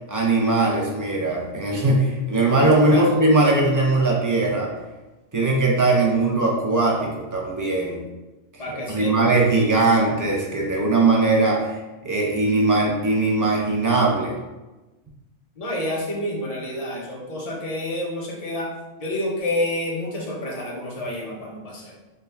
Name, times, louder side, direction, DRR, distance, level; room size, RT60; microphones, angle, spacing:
voice 1, 0.1-4.7 5.3-8.0 8.5-11.8 12.0-14.3, right 2 dB, 25° right, -2 dB, 0.5 m, -20 dB
voice 2, 8.6-9.3 15.6-18.7 19.0-21.9, left 1 dB, 35° left, -3 dB, 0.8 m, -28 dB
4.4 x 2.6 x 3.3 m, 1.1 s
omnidirectional pair, 1.3 m